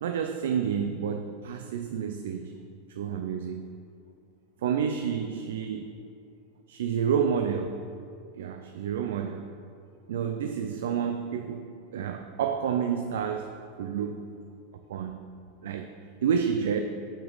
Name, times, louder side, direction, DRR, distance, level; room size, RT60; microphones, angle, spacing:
voice 1, 0.0-2.5 3.0-3.6 4.6-5.9 6.7-7.8 8.4-9.5 10.1-14.2 14.9-15.2 15.6-15.9 16.2-16.8, right 7 dB, 85° right, 6 dB, 0.3 m, -29 dB
6.1 x 5.1 x 4.0 m, 2.4 s
supercardioid pair, 145°, 0 cm